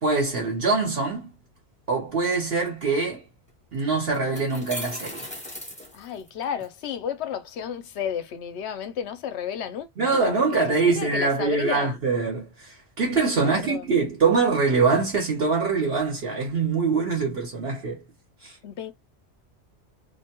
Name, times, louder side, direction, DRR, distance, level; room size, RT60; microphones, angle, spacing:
voice 1, 0.0-1.3 1.9-3.2 3.7-5.3 10.0-18.0 18.4-18.6, right 4 dB, 60° right, 1.1 m, -24 dB
sound 1, 3.5-3.6 4.1-6.7, left 1 dB, 5° left, 0.7 m, -37 dB
voice 2, 5.9-10.5 10.8-12.0 13.4-13.9 18.6-18.9, left 8 dB, 75° left, 0.9 m, -32 dB
2.6 x 2.2 x 2.8 m
omnidirectional pair, 1.2 m